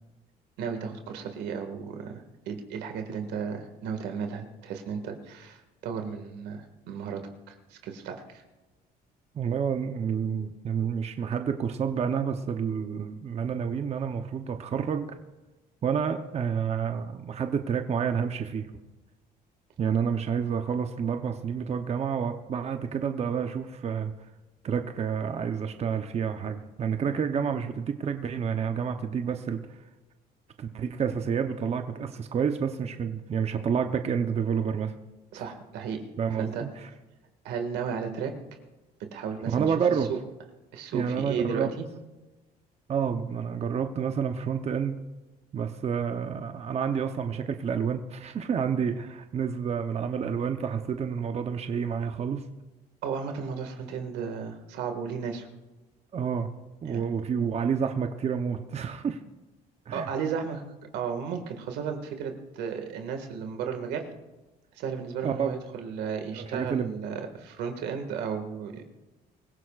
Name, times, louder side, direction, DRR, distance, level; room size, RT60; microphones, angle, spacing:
voice 1, 0.6-7.2 7.5-8.4 35.3-36.0 36.4-36.6 37.4-38.3 39.1-39.6 40.1-40.2 40.7-41.9 53.0-55.5 56.9-57.0 59.9-60.6 60.9-64.0 64.8-68.9, right 6 dB, 85° right, 5 dB, 2.0 m, -34 dB
voice 2, 9.3-15.2 15.8-18.7 19.8-24.1 24.6-29.6 30.6-34.9 36.2-36.9 39.5-40.1 40.9-41.7 42.9-45.0 45.5-52.4 56.1-56.5 56.8-59.2 59.9-60.1 65.2-65.6 66.3-66.9, right 7 dB, 40° right, 6 dB, 0.8 m, -29 dB
24.0 x 15.5 x 2.5 m, 1.1 s
cardioid pair, 110°, 17 cm